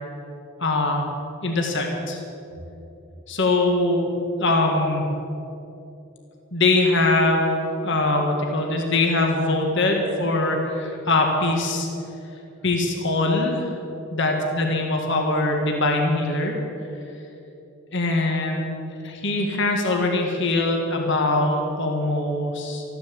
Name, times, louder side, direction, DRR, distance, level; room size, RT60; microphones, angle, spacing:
voice 1, 0.6-1.1 1.4-2.2 3.3-4.1 4.4-5.1 6.5-11.9 12.6-13.7 14.1-16.6 17.9-18.8 19.0-22.8, left 2 dB, 55° left, 1 dB, 1.8 m, -22 dB
14.5 x 11.5 x 7.7 m, 2.8 s
head